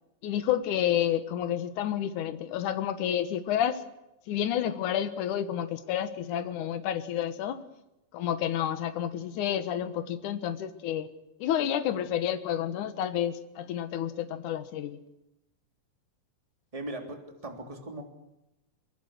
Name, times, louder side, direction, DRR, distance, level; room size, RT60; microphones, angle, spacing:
voice 1, 0.2-3.8 4.3-7.6 8.1-11.1 11.4-15.0, left 10 dB, 70° left, 10 dB, 2.7 m, -30 dB
voice 2, 16.7-18.0, right 1 dB, 10° right, 3 dB, 3.0 m, -39 dB
23.5 x 23.5 x 6.5 m, 0.90 s
omnidirectional pair, 3.7 m